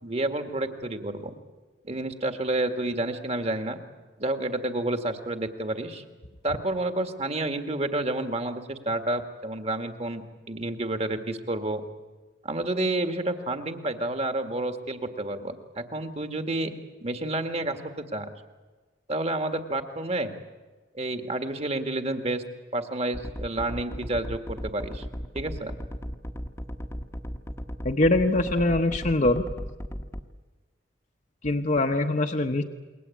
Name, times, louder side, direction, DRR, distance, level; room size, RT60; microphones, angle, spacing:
voice 1, 0.0-1.3 1.8-3.8 4.2-6.0 6.4-11.8 12.4-16.7 17.0-18.3 19.1-20.3 20.9-22.4 22.7-25.1 25.3-25.7, right 2 dB, 35° right, 7 dB, 2.0 m, -30 dB
sound 1, 23.1-30.2, equal, 15° left, 1.1 m, -35 dB
voice 2, 27.8-29.4 31.4-32.6, left 2 dB, 45° left, 3 dB, 1.1 m, -23 dB
28.5 x 22.0 x 8.6 m, 1.3 s
head